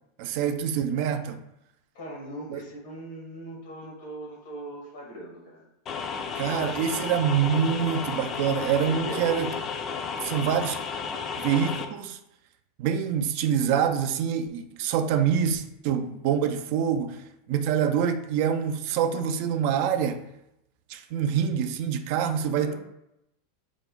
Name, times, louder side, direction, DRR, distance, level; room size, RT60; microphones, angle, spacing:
voice 1, 0.2-1.4 2.5-2.6 6.4-9.5 10.2-10.8 11.4-12.2 12.8-17.2 17.5-20.2 20.9-22.7, right 8 dB, 60° right, 0.4 m, -26 dB
voice 2, 1.9-5.7 8.8-9.6 22.4-22.7, right 1 dB, 80° left, 1.2 m, -40 dB
sound 1, 5.9-11.9, left 5 dB, 35° left, 0.4 m, -33 dB
3.4 x 2.0 x 3.7 m
hypercardioid pair, 105°, 0 cm